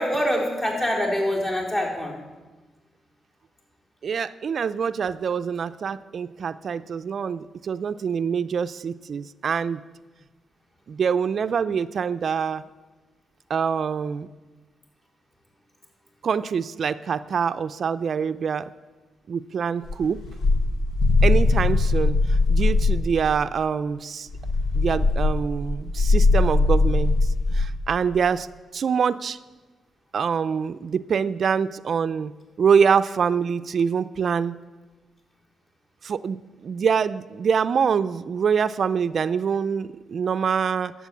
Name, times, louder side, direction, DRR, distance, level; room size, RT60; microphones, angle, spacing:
voice 1, 0.0-2.1, equal, 35° left, -3 dB, 4.3 m, -25 dB
voice 2, 4.0-9.8 10.9-12.6 13.5-14.3 16.2-18.7 19.3-20.2 21.2-24.3 24.7-27.1 27.5-28.5 28.7-29.4 30.1-32.3 32.6-34.6 36.0-40.9, right 6 dB, 60° right, 13 dB, 0.4 m, -25 dB
sound 1, 19.9-23.1 24.3-27.8, left 3 dB, 85° left, 1.3 m, -20 dB
12.0 x 7.3 x 8.3 m, 1.3 s
cardioid pair, 75°, 0 cm